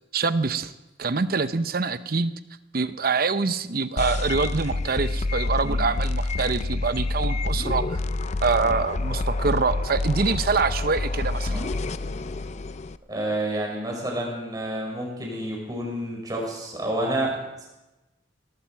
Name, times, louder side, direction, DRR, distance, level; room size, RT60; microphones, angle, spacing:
voice 1, 0.1-0.7 1.0-2.3 2.7-8.0 8.4-11.6, right 4 dB, 55° right, 12 dB, 0.7 m, -25 dB
sound 1, 4.0-13.0, left 2 dB, 40° left, 0.5 m, -28 dB
voice 2, 13.1-17.7, right 1 dB, 20° right, -1 dB, 5.2 m, -29 dB
18.5 x 15.0 x 4.6 m, 1.0 s
head